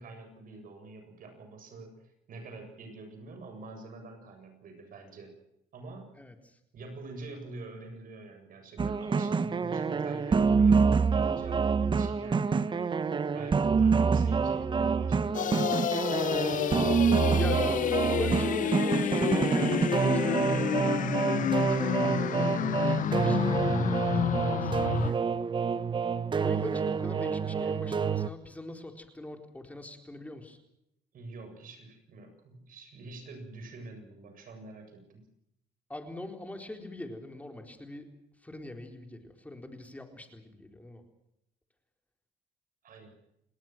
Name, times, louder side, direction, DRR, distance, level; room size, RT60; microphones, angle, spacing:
voice 1, 0.0-5.3 5.7-6.1 6.7-12.9 13.3-16.7 31.1-35.3 42.8-43.2, right 2 dB, 55° right, 5 dB, 7.7 m, -46 dB
voice 2, 6.2-6.6 17.4-17.6 17.9-21.0 21.4-25.2 26.4-30.6 35.9-38.1 38.4-41.0, left 1 dB, 10° left, 5 dB, 4.2 m, -42 dB
sound 1, 8.8-28.3, right 5 dB, 30° right, 1.0 m, -27 dB
sound 2, 15.3-25.1, left 10 dB, 50° left, 0.8 m, -29 dB
sound 3, 15.9-20.9, right 6 dB, 70° right, 4.8 m, -55 dB
28.5 x 19.5 x 6.2 m, 0.80 s
cardioid pair, 110°, 17 cm